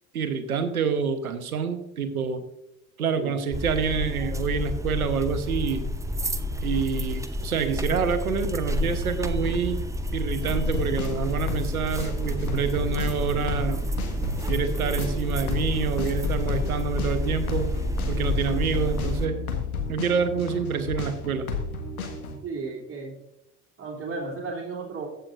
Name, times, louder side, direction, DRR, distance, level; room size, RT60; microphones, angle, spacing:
voice 1, 0.1-2.4 3.0-5.8 6.6-9.8 10.1-13.8 14.5-17.7 18.1-19.4 19.9-21.5, right 6 dB, 80° right, 10 dB, 1.1 m, -27 dB
sound 1, 3.5-19.3, equal, 5° right, 0.7 m, -29 dB
sound 2, 10.4-22.4, left 6 dB, 75° left, 1.5 m, -32 dB
voice 2, 22.4-23.1 23.8-25.1, right 4 dB, 30° right, -2 dB, 3.0 m, -34 dB
14.5 x 8.0 x 2.5 m, 0.82 s
figure-of-eight pair, 60°, 43 cm